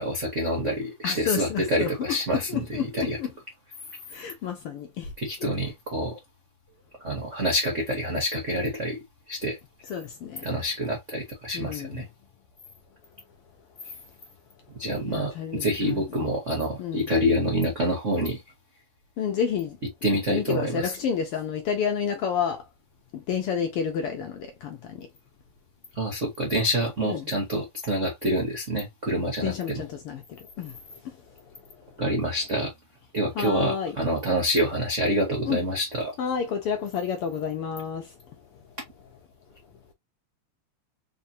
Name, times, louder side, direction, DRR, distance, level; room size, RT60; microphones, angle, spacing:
voice 1, 0.0-3.2 5.2-6.2 7.0-9.0 9.3-9.6 10.4-12.1 14.7-18.4 20.0-20.9 25.9-29.8 32.0-32.7 33.1-36.1, equal, 65° right, 0.7 m, -27 dB
voice 2, 1.0-3.3 4.1-5.1 5.4-5.5 9.9-10.5 11.5-12.1 15.1-16.3 16.8-17.1 19.2-19.8 20.3-22.6 23.1-25.1 27.0-27.3 29.4-31.8 33.3-34.0 35.4-35.6 36.2-38.2, left 7 dB, 75° left, 1.3 m, -30 dB
4.3 x 3.2 x 2.7 m
omnidirectional pair, 3.4 m